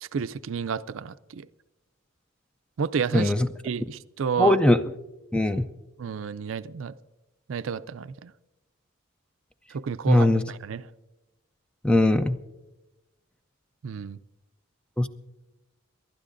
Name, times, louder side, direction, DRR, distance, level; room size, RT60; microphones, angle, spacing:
voice 1, 0.0-1.5 2.8-3.3 3.6-4.6 6.0-6.9 7.5-8.3 9.7-10.8 13.8-14.2, right 6 dB, 70° right, 14 dB, 0.4 m, -31 dB
voice 2, 3.1-3.5 4.4-4.8 5.3-5.7 10.1-10.4 11.8-12.4 15.0-15.1, left 1 dB, 5° left, 10 dB, 0.4 m, -20 dB
28.5 x 12.0 x 2.6 m, 1.0 s
head